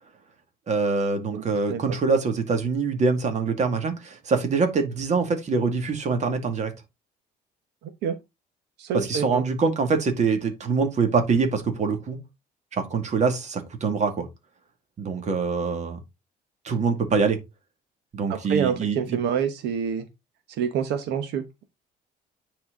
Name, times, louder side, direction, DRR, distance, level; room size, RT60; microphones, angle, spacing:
voice 1, 0.7-6.7 8.9-12.2 12.7-14.3 15.0-16.0 16.6-17.4 18.1-19.2, right 4 dB, 45° right, 2.2 m, -24 dB
voice 2, 8.8-9.4 18.3-20.0 20.6-21.6, right 7 dB, 80° right, 1.2 m, -27 dB
9.6 x 4.5 x 3.8 m
cardioid pair, 110°, 17 cm